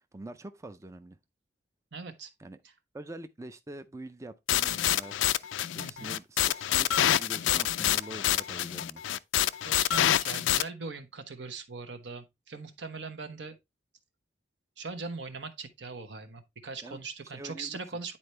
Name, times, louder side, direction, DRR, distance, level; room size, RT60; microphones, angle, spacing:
voice 1, 0.1-1.2 2.4-2.6 2.9-9.0 16.8-17.0 17.3-17.8, right 2 dB, 15° right, 0.4 m, -45 dB
voice 2, 1.9-2.3 2.6-2.7 5.8-6.2 9.6-13.6 14.8-18.2, right 4 dB, 70° right, 1.1 m, -40 dB
sound 1, 4.5-10.6, left 12 dB, 90° left, 0.4 m, -27 dB
9.9 x 4.3 x 3.2 m
head